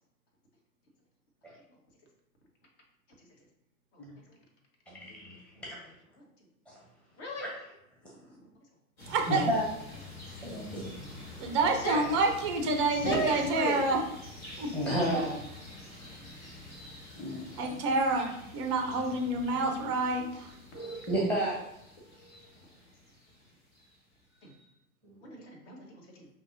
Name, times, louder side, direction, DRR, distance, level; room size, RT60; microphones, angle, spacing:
voice 1, 3.9-4.4 6.1-6.3 7.1-7.5 10.7-10.8 11.7-12.1 12.9-13.8 15.9-16.0 16.8-16.9 19.5-19.6 20.1-20.2 20.8-20.9 22.5-22.6 24.4-24.7 25.2-26.3, equal, 50° left, 0 dB, 1.2 m, -37 dB
voice 2, 4.9-5.9 6.7-6.8 7.4-7.5 9.3-9.6 10.3-10.9 13.0-13.1 14.7-15.5 17.2-17.5 20.7-21.6 22.2-22.3 25.0-25.3, equal, 5° left, -5 dB, 0.8 m, -32 dB
sound 1, 9.0-24.0, left 2 dB, 70° left, 1.5 m, -47 dB
voice 3, 9.1-9.5 11.4-14.0 14.6-14.7 17.6-20.5, right 3 dB, 25° right, 3 dB, 0.4 m, -28 dB
5.2 x 2.8 x 2.6 m, 0.80 s
figure-of-eight pair, 105°, 43 cm